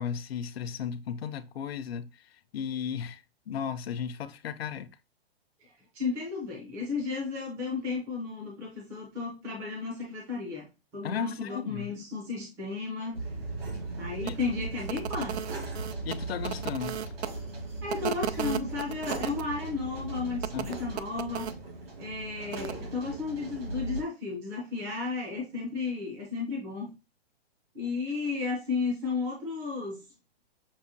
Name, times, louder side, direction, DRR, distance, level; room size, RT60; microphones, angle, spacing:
voice 1, 0.0-2.1 2.5-4.9 11.0-11.9 13.7-13.8 14.2-14.4 16.0-17.0 20.5-20.7, left 7 dB, 70° left, 0.6 m, -35 dB
voice 2, 5.6-10.7 10.9-13.3 14.0-15.5 17.8-21.5 22.0-26.9 27.7-30.0, left 4 dB, 10° right, 0.5 m, -34 dB
sound 1, 13.1-24.0, right 2 dB, 65° right, 2.0 m, -38 dB
sound 2, 14.2-14.3 14.8-17.3 17.9-19.4 20.4-21.5 22.5-22.7, right 10 dB, 85° right, 0.5 m, -34 dB
6.2 x 2.2 x 2.7 m
hypercardioid pair, 165°, 32 cm